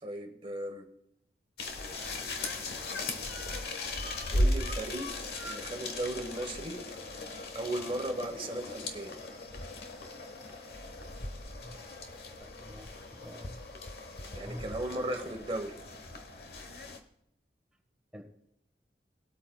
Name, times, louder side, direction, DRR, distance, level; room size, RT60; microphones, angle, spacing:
voice 1, 0.0-0.8 4.3-5.1 5.4-6.8 7.5-9.1 14.3-15.7, right 1 dB, 30° right, 4 dB, 1.2 m, -36 dB
sound 1, 1.6-17.0, left 1 dB, 60° left, 1.2 m, -37 dB
voice 2, 12.4-13.6 14.3-14.8 18.1-18.2, equal, 5° right, 2 dB, 1.4 m, -46 dB
19.5 x 8.3 x 2.3 m, 0.77 s
head